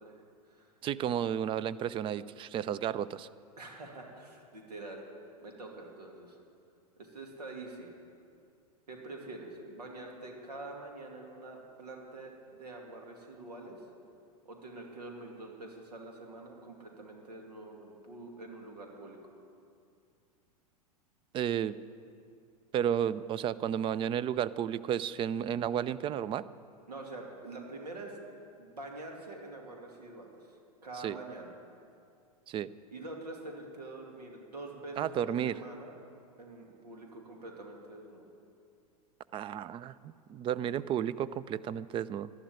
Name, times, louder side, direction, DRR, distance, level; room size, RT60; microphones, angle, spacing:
voice 1, 0.0-0.7 3.6-5.0 5.4-6.4 7.0-7.9 8.9-13.8 14.4-19.2 26.9-28.2 28.6-30.6 30.8-31.5 32.9-35.9 36.4-38.3, right 2 dB, 80° right, 1 dB, 2.5 m, -45 dB
voice 2, 0.8-3.3 21.3-21.8 22.7-26.5 31.0-31.2 32.5-32.7 35.0-35.6 39.3-42.3, right 9 dB, 25° right, 17 dB, 0.4 m, -32 dB
12.5 x 11.5 x 8.7 m, 2.4 s
hypercardioid pair, 100°, 20 cm